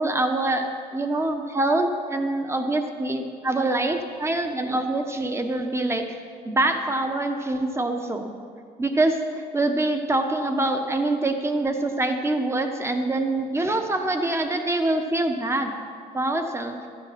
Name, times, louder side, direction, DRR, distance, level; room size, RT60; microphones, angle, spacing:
voice 1, 0.0-6.2 6.4-8.3 8.8-15.7 16.1-16.8, right 2 dB, 15° right, 5 dB, 1.2 m, -25 dB
13.0 x 9.6 x 5.9 m, 2.2 s
cardioid pair, 110°, 17 cm